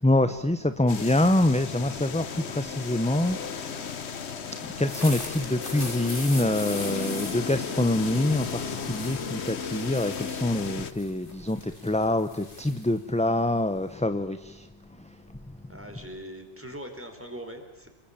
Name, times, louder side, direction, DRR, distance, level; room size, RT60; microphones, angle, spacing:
voice 1, 0.0-4.0 4.5-14.7 15.0-15.4, left 1 dB, 5° left, 0.8 m, -26 dB
sound 1, 0.9-10.9, left 6 dB, 75° left, 1.4 m, -35 dB
sound 2, 4.8-14.0, left 2 dB, 50° left, 3.5 m, -42 dB
voice 2, 15.7-17.9, equal, 10° right, 4.5 m, -41 dB
28.5 x 22.0 x 8.9 m
omnidirectional pair, 1.1 m